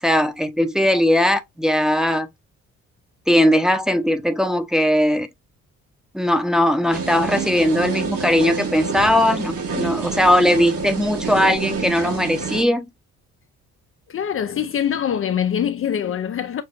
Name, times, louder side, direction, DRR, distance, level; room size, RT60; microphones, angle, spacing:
voice 1, 0.0-2.3 3.3-5.3 6.1-12.9, equal, ahead, 0.8 m, -19 dB
sound 1, 6.9-12.6, right 4 dB, 90° right, 3.3 m, -27 dB
voice 2, 14.1-16.6, left 9 dB, 45° left, 0.5 m, -23 dB
6.9 x 2.5 x 2.5 m
cardioid pair, 90°, 30 cm